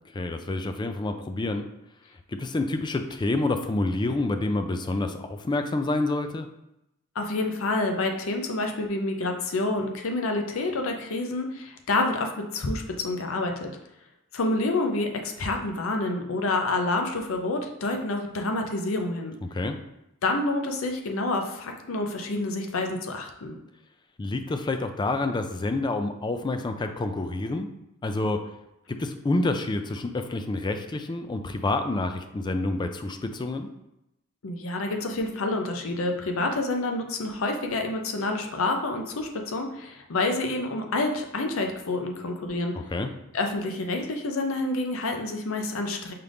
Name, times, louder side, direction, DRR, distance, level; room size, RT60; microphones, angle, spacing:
voice 1, 0.1-1.7 2.3-6.5 19.4-19.8 24.2-27.7 28.0-28.4 28.9-33.7 42.7-43.1, left 2 dB, 20° left, 7 dB, 0.3 m, -28 dB
voice 2, 7.1-13.7 14.3-19.4 20.2-23.6 34.4-42.7 43.3-46.1, left 2 dB, 75° left, 4 dB, 0.6 m, -28 dB
5.7 x 2.5 x 3.4 m, 0.87 s
head